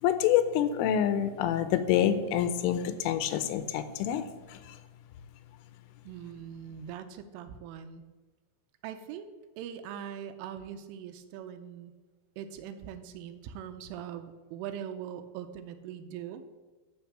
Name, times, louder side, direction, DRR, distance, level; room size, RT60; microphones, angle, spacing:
voice 1, 0.0-4.8, left 10 dB, 80° left, 11 dB, 3.2 m, -27 dB
voice 2, 6.1-8.0 8.8-11.9 12.4-16.4, right 9 dB, 80° right, 9 dB, 3.1 m, -41 dB
12.5 x 5.5 x 7.3 m, 1.3 s
omnidirectional pair, 5.9 m